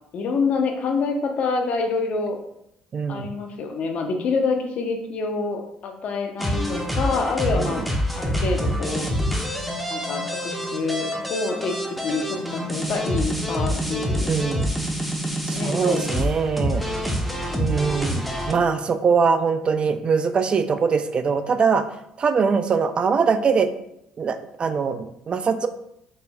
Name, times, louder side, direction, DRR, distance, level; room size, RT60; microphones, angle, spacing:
voice 1, 0.1-2.4 3.1-7.8 8.2-9.1 9.9-14.3 15.5-16.0 17.5-17.8, left 4 dB, 60° left, 3 dB, 0.7 m, -27 dB
voice 2, 2.9-3.3 7.5-7.8 14.3-14.7 15.5-16.9 17.6-18.2 18.5-21.8 22.2-23.7 24.2-25.7, right 5 dB, 40° right, 9 dB, 0.3 m, -22 dB
sound 1, 6.4-18.5, equal, ahead, 0.7 m, -26 dB
4.2 x 3.3 x 2.2 m, 0.79 s
supercardioid pair, 70°, 3 cm